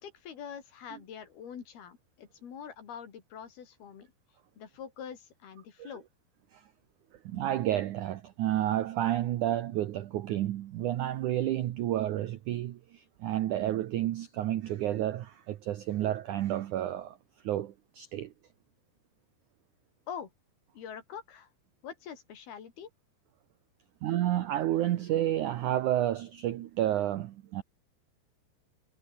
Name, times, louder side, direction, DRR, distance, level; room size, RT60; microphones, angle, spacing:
voice 1, 0.0-4.1 4.6-6.0 20.1-20.3 20.7-21.5 21.8-22.9, left 8 dB, 65° left, 4.9 m, -44 dB
voice 2, 7.3-17.2 17.4-18.3 24.0-27.6, right 13 dB, 80° right, 1.7 m, -30 dB
omnidirectional pair, 5.0 m